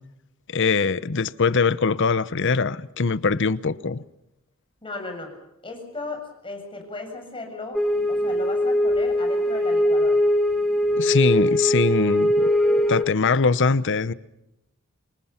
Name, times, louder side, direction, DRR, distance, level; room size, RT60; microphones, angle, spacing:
voice 1, 0.5-4.0 11.0-12.5 12.9-14.1, left 4 dB, 60° left, 0.8 m, -22 dB
voice 2, 4.8-5.3 5.6-7.8 8.1-10.2, left 3 dB, 25° left, 7.6 m, -35 dB
sound 1, 7.7-13.0, left 1 dB, ahead, 2.1 m, -21 dB
28.0 x 25.5 x 5.8 m
head